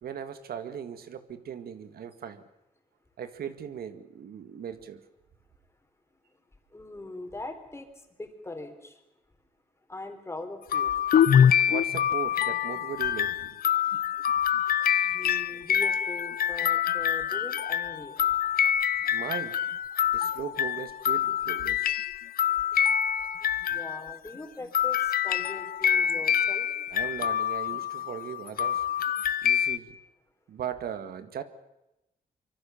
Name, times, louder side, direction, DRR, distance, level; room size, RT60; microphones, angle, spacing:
voice 1, 0.0-2.4 3.2-5.0 11.7-13.6 19.1-19.6 20.1-21.9 26.9-28.8 29.4-30.0 30.5-31.4, right 8 dB, 85° right, 10 dB, 1.9 m, -38 dB
voice 2, 6.7-7.9 8.2-8.9 9.9-10.9 15.1-18.2 23.7-26.6, left 2 dB, 15° left, 5 dB, 3.8 m, -41 dB
sound 1, 10.7-24.3 24.7-29.8, left 9 dB, 75° left, 0.9 m, -26 dB
24.5 x 24.0 x 7.2 m, 0.93 s
wide cardioid pair, 125°, 15 cm